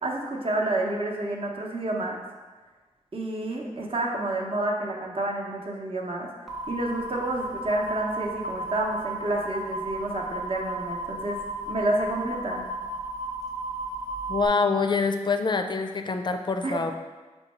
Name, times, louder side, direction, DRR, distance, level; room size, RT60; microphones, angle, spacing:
voice 1, 0.0-2.2 3.1-6.3 6.7-12.7 16.6-16.8, right 2 dB, 45° right, -1 dB, 0.8 m, -29 dB
sound 1, 6.5-14.5, right 2 dB, ahead, 0.7 m, -34 dB
voice 2, 14.3-16.9, left 4 dB, 35° left, 6 dB, 0.4 m, -25 dB
5.4 x 2.3 x 4.2 m, 1.3 s
cardioid pair, 55°, 13 cm